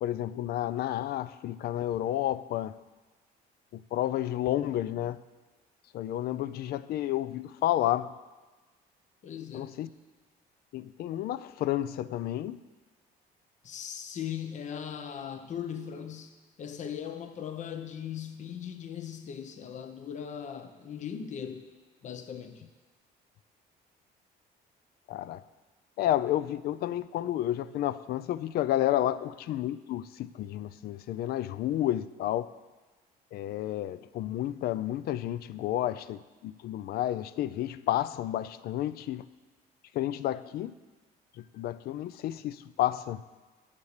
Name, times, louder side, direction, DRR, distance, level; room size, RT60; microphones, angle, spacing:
voice 1, 0.0-2.8 3.7-5.2 5.9-8.1 9.5-9.9 10.7-12.6 25.1-25.4 26.0-32.5 33.3-39.2 39.9-40.7 41.5-43.2, left 13 dB, 65° left, 16 dB, 0.4 m, -31 dB
voice 2, 9.2-9.8 13.6-16.3 16.6-21.7 22.0-22.7, left 8 dB, 45° left, 8 dB, 0.8 m, -39 dB
10.0 x 6.7 x 6.5 m, 1.3 s
cardioid pair, 110°, 17 cm